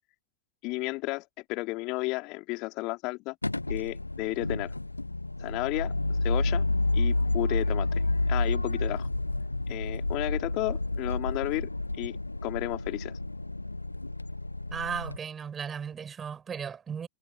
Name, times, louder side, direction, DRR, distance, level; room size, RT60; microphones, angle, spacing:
voice 1, 0.6-3.4 3.7-4.7 5.4-5.9 6.2-6.7 6.9-7.9 8.3-9.1 9.7-11.7 12.0-12.2 12.4-13.2, left 24 dB, 40° left, 3.9 m, -32 dB
sound 1, 3.4-15.2, left 2 dB, 85° left, 0.6 m, -30 dB
voice 2, 14.7-17.1, right 7 dB, 20° right, 6.1 m, -36 dB
figure-of-eight pair, 90°, 0 cm